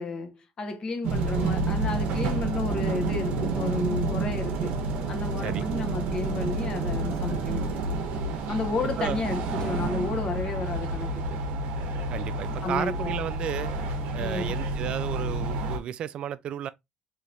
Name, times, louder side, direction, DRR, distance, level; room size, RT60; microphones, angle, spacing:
voice 1, 0.0-4.8 5.1-8.0 8.5-11.4 12.6-13.1 14.2-14.6, left 3 dB, 40° left, 0.9 m, -32 dB
sound 1, 1.0-15.8, right 3 dB, 70° right, 0.7 m, -29 dB
voice 2, 12.1-13.7 14.1-16.7, right 10 dB, 55° right, 0.3 m, -33 dB
3.2 x 2.8 x 2.5 m
supercardioid pair, 90°, 2 cm